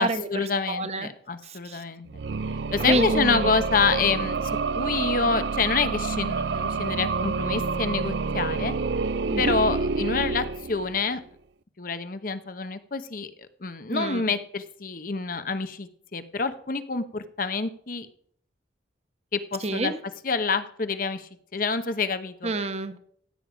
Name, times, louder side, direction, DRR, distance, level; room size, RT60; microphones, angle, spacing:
voice 1, 0.0-2.1 2.7-4.5 4.7-8.7 9.4-11.2 11.8-13.3 13.6-18.1 19.3-19.9 20.2-22.5, left 4 dB, 50° left, 10 dB, 0.9 m, -27 dB
voice 2, 0.7-1.1 1.7-1.8 2.9-3.5 9.3-9.6 13.9-14.2 19.6-19.9 22.4-23.0, right 2 dB, 35° right, 9 dB, 1.0 m, -27 dB
sound 1, 2.1-11.1, right 4 dB, 70° right, 0.5 m, -28 dB
15.5 x 8.6 x 5.1 m, 0.64 s
head